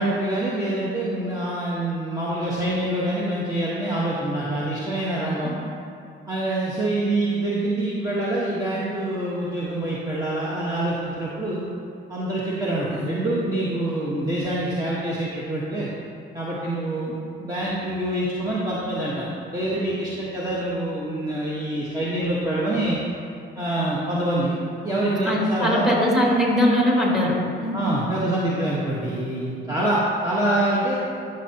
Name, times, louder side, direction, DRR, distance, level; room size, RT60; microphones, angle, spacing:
voice 1, 0.0-5.5 6.3-11.6 12.1-15.9 16.3-23.0 23.6-24.5 24.8-25.9 27.7-31.0, right 1 dB, 20° right, -7 dB, 1.3 m, -25 dB
voice 2, 25.2-27.7, equal, ahead, -3 dB, 2.2 m, -20 dB
12.5 x 6.6 x 2.9 m, 2.5 s
cardioid pair, 90°, 20 cm